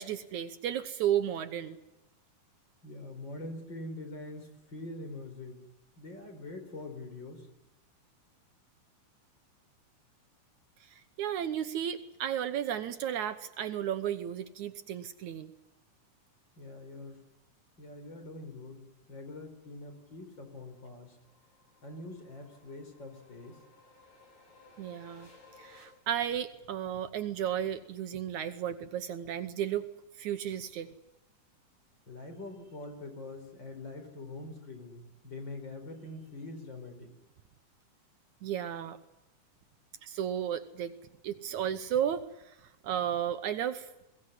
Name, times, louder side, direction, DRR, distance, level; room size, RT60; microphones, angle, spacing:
voice 1, 0.0-1.8 10.8-15.5 24.8-25.3 25.6-29.9 30.2-30.9 38.4-39.0 40.0-40.9 41.2-42.6 42.8-43.9, right 10 dB, 70° right, 10 dB, 2.3 m, -33 dB
voice 2, 2.8-5.6 6.0-7.5 16.6-17.2 17.8-21.2 21.8-23.6 32.1-37.1, left 2 dB, 35° left, 5 dB, 5.1 m, -44 dB
sound 1, 19.5-25.9, left 3 dB, 65° left, 8.4 m, -60 dB
22.5 x 17.5 x 9.9 m, 0.91 s
omnidirectional pair, 3.7 m